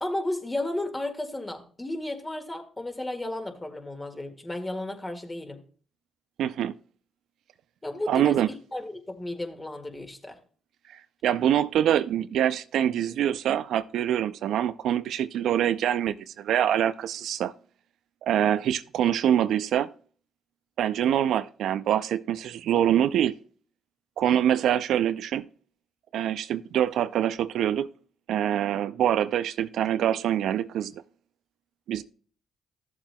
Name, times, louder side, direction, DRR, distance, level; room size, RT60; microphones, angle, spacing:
voice 1, 0.0-5.6 7.8-8.4 8.7-10.4, left 1 dB, 20° left, 1.9 m, -33 dB
voice 2, 6.4-6.7 8.1-8.5 10.9-17.5 18.2-19.9 20.8-23.3 24.2-25.5 26.1-27.9 28.3-31.0 31.9-32.0, right 10 dB, 75° right, 0.4 m, -25 dB
14.0 x 7.4 x 2.2 m
supercardioid pair, 60°, 0 cm